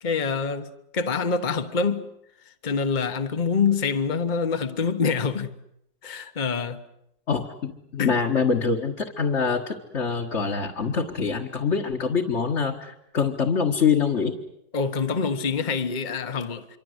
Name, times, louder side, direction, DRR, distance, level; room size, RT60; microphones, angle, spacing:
voice 1, 0.0-0.7 0.9-2.1 2.6-5.5 6.0-6.8 8.0-8.1 14.7-16.8, left 5 dB, 30° left, 1.3 m, -25 dB
voice 2, 7.3-14.3, left 5 dB, 50° left, 1.8 m, -25 dB
26.5 x 24.5 x 8.1 m
omnidirectional pair, 1.6 m